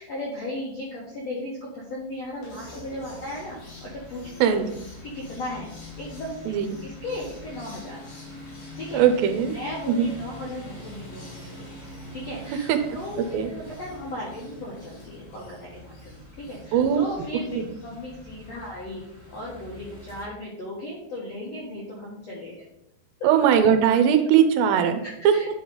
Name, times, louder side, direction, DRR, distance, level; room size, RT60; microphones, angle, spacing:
voice 1, 0.0-4.3 5.0-6.5 6.8-8.0 8.8-9.0 9.5-11.7 12.1-17.6 17.8-22.6 25.0-25.5, left 1 dB, 70° left, -5 dB, 1.6 m, -36 dB
open close window, 2.1-20.3, left 1 dB, 85° left, 5.4 m, -43 dB
voice 2, 6.5-6.8 8.9-9.5 9.9-10.1 12.7-12.8 13.2-13.5 16.7-17.0 17.5-17.7 23.2-25.3, right 8 dB, 80° right, 7 dB, 2.7 m, -20 dB
10.5 x 3.9 x 3.9 m, 0.81 s
omnidirectional pair, 5.1 m